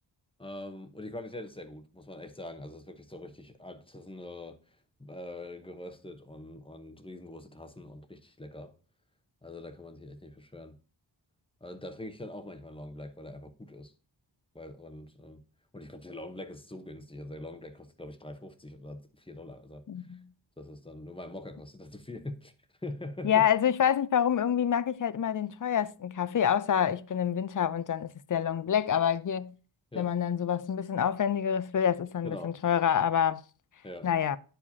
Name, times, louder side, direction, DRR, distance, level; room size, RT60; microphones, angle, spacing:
voice 1, 0.4-8.7 9.4-10.8 11.6-13.9 14.5-15.4 15.7-20.2 20.6-22.5 22.8-23.4 29.9-30.2 32.2-32.6 33.8-34.1, left 1 dB, 10° left, 0.9 m, -43 dB
voice 2, 19.9-20.2 23.2-29.6 30.0-33.4 34.0-34.4, left 9 dB, 45° left, 0.5 m, -27 dB
10.0 x 4.9 x 2.7 m
wide cardioid pair, 95°, 47 cm